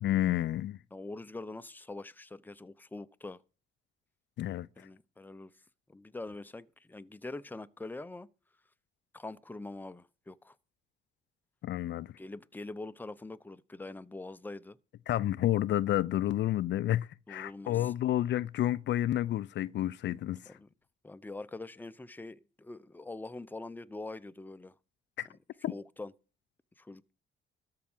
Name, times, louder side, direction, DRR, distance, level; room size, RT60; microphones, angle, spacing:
voice 1, 0.0-0.8 4.4-4.7 11.6-12.1 15.1-20.6 25.2-25.3 25.6-25.7, left 13 dB, 65° left, 0.5 m, -30 dB
voice 2, 0.9-3.4 4.8-5.5 5.9-8.3 9.1-10.6 12.2-14.8 17.3-17.9 20.5-20.7 21.0-24.7 25.3-25.4 25.7-26.1 26.8-27.1, left 2 dB, 10° left, 0.7 m, -44 dB
13.5 x 4.8 x 8.8 m
cardioid pair, 90°, 20 cm